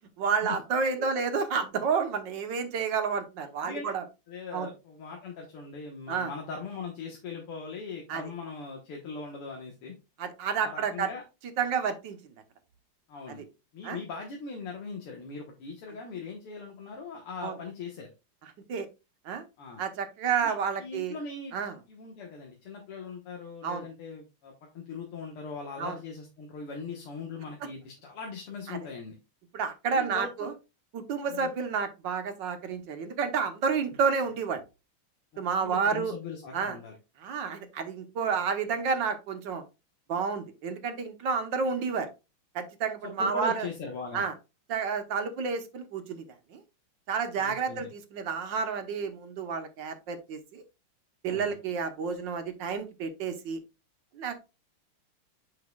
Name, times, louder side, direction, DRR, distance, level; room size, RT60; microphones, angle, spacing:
voice 1, 0.2-4.0 4.5-4.7 6.1-6.3 8.1-8.2 10.2-11.1 11.6-12.2 13.4-13.5 13.8-14.0 17.4-17.6 18.7-18.9 19.2-19.4 19.8-21.2 21.5-21.7 23.6-23.9 25.8-26.0 28.7-28.8 29.5-30.5 30.9-34.6 35.4-36.1 36.5-36.8 37.2-39.6 40.1-42.1 42.5-43.7 44.1-44.3 44.7-46.2 46.5-46.6 47.1-50.6 51.2-53.6 54.1-54.4, right 5 dB, 65° right, 8 dB, 1.4 m, -30 dB
voice 2, 3.6-3.9 4.3-10.0 10.6-11.2 13.1-13.4 13.7-18.1 19.6-19.8 20.4-20.5 20.8-21.6 21.9-29.1 29.9-30.5 31.3-31.5 35.3-36.9 43.0-44.3 47.4-47.9 51.3-51.6, left 4 dB, 85° left, 1 dB, 2.2 m, -40 dB
8.3 x 5.8 x 2.3 m, 0.27 s
omnidirectional pair, 2.4 m